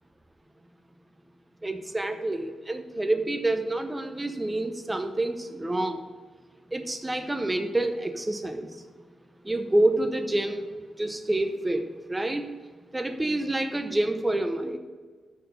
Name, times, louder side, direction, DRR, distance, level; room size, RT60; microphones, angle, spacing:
voice 1, 1.6-6.0 6.7-8.7 9.4-10.7 11.0-12.5 12.9-14.8, right 1 dB, 10° right, 7 dB, 0.7 m, -27 dB
6.7 x 6.0 x 6.7 m, 1.5 s
wide cardioid pair, 170°, 0 cm